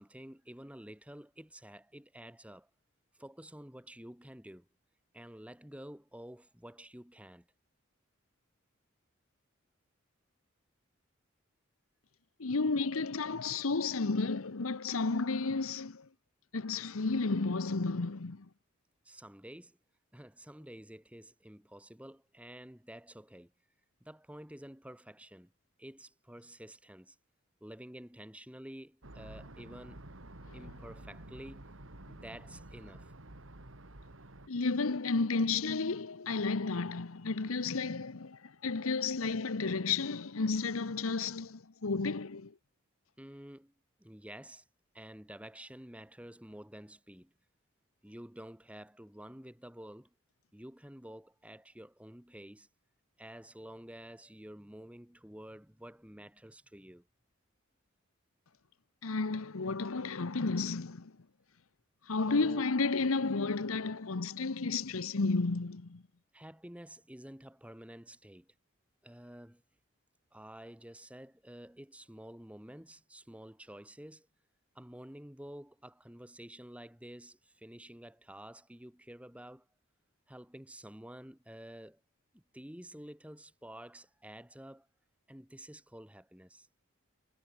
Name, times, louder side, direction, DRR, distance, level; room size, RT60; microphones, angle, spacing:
voice 1, 0.0-2.7 3.2-4.7 5.1-7.5 19.0-19.8 20.1-23.5 24.0-25.5 25.8-27.2 27.6-30.1 30.5-31.7 32.1-33.1 43.2-43.7 44.0-44.7 44.9-47.3 48.0-50.1 50.5-52.7 53.2-57.0 62.3-62.6 66.3-68.5 69.0-69.6 70.3-74.3 74.7-79.7 80.3-82.0 82.3-84.9 85.3-86.7, right 1 dB, 5° right, 1.5 m, -50 dB
voice 2, 12.4-16.1 16.5-18.5 30.5-30.6 34.5-42.5 59.0-61.1 62.1-66.0, left 3 dB, 85° left, 1.0 m, -32 dB
sound 1, 29.0-34.5, right 1 dB, 70° right, 2.6 m, -50 dB
head